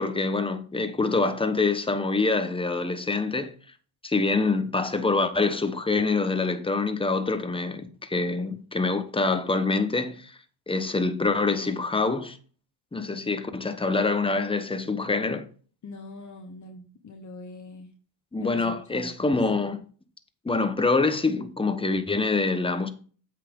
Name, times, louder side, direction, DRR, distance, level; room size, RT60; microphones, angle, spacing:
voice 1, 0.0-3.5 4.0-10.4 10.7-12.4 12.9-15.4 18.3-19.8 20.4-22.9, left 3 dB, 10° left, 1.0 m, -25 dB
voice 2, 15.8-17.9 18.4-18.6 18.9-19.3, left 2 dB, 35° left, 1.2 m, -43 dB
8.1 x 6.0 x 3.7 m
cardioid pair, 95°, 49 cm